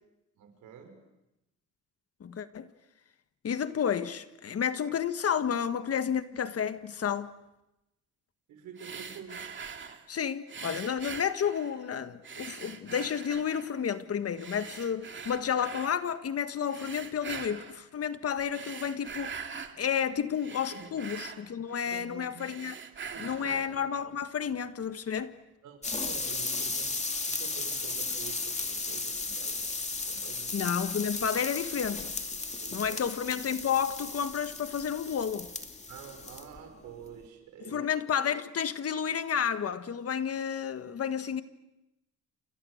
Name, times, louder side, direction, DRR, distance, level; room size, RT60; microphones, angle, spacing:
voice 1, 0.4-1.0 8.5-9.4 20.7-20.9 21.9-22.5 23.1-23.6 25.6-29.6 30.1-30.5 32.5-33.0 35.9-37.9, right 7 dB, 85° right, 6.1 m, -48 dB
voice 2, 2.2-2.7 3.4-7.3 10.1-19.5 19.8-22.8 23.2-25.3 30.5-32.1 32.7-35.5 37.6-41.4, left 8 dB, 50° left, 1.6 m, -31 dB
sound 1, 8.8-10.1 10.5-11.9 12.2-13.8 14.4-16.0 16.7-17.8 18.4-19.8 20.2-22.0 22.3-23.8, right 6 dB, 40° right, 2.4 m, -43 dB
sound 2, 25.8-36.6 36.9-37.2, left 3 dB, 20° left, 2.6 m, -35 dB
29.0 x 29.0 x 6.5 m
cardioid pair, 90°, 30 cm